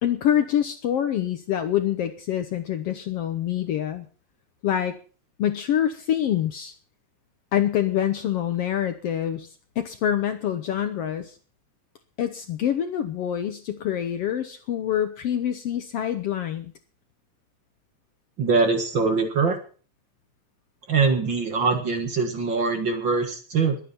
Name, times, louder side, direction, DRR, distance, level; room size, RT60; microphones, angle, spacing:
voice 1, 0.0-4.1 4.6-4.9 5.4-6.7 7.5-11.4 12.2-16.7, left 10 dB, 65° left, 8 dB, 1.6 m, -26 dB
voice 2, 18.4-19.6 20.9-23.8, right 4 dB, 45° right, 5 dB, 2.1 m, -23 dB
21.5 x 9.1 x 4.4 m, 0.40 s
omnidirectional pair, 3.4 m